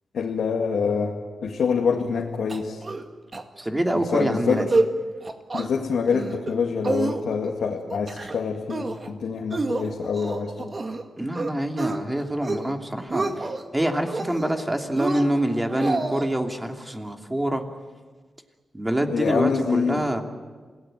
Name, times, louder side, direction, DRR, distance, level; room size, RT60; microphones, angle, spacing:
voice 1, 0.1-1.2 1.4-2.8 3.9-4.6 5.5-10.8 19.1-20.1, left 5 dB, 85° left, 0 dB, 2.2 m, -26 dB
sound 1, 2.5-3.1 3.3-3.4 3.8-4.0 4.4-4.9 5.2-5.7 6.1-6.5 6.8-7.5 7.9-8.4 8.7-9.1 9.5-11.0 11.3-12.0 12.3-12.7 13.0-13.6 14.0-14.6 15.0-16.3, right 3 dB, 40° right, 2.1 m, -28 dB
voice 2, 3.6-4.7 11.2-13.5 13.7-17.6 18.7-20.2, right 1 dB, 15° right, 4 dB, 2.7 m, -26 dB
27.0 x 18.0 x 9.2 m, 1.5 s
cardioid pair, 80°, 0 cm